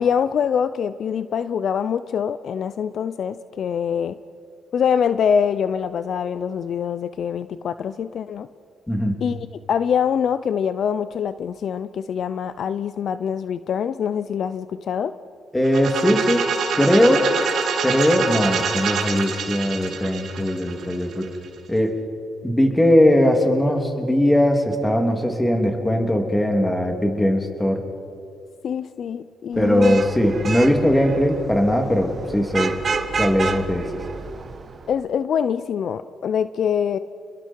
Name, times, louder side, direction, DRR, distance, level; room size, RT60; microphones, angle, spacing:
voice 1, 0.0-4.2 4.7-8.5 9.2-15.1 28.6-30.0 34.9-37.0, left 7 dB, 60° left, 14 dB, 0.5 m, -24 dB
voice 2, 8.9-9.2 15.5-16.4 16.7-17.3 17.8-21.2 21.7-22.0 22.4-27.8 29.6-32.7 33.2-34.0, equal, 10° left, 3 dB, 3.1 m, -19 dB
sound 1, 15.6-21.5, right 6 dB, 70° right, 2.4 m, -26 dB
Vehicle horn car horn honking / Traffic noise roadway noise, 29.6-34.9, right 4 dB, 40° right, 1.3 m, -30 dB
30.0 x 21.5 x 4.7 m, 2.5 s
cardioid pair, 90°, 0 cm